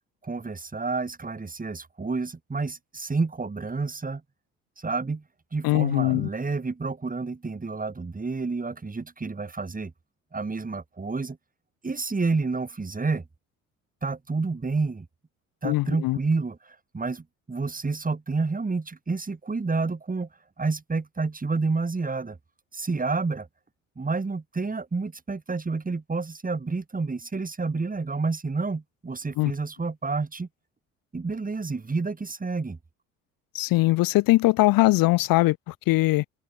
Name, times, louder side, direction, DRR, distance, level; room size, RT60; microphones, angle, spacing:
voice 1, 0.2-4.2 4.8-5.2 5.5-9.9 10.3-11.4 11.8-13.2 14.0-15.1 15.6-20.3 20.6-22.4 22.7-23.5 24.0-30.5 31.1-32.8, right 4 dB, 20° right, 6.2 m, -29 dB
voice 2, 5.6-6.3 15.6-16.2 29.4-29.5 33.5-36.2, left 19 dB, 55° left, 1.2 m, -21 dB
open air
figure-of-eight pair, 55°, 41 cm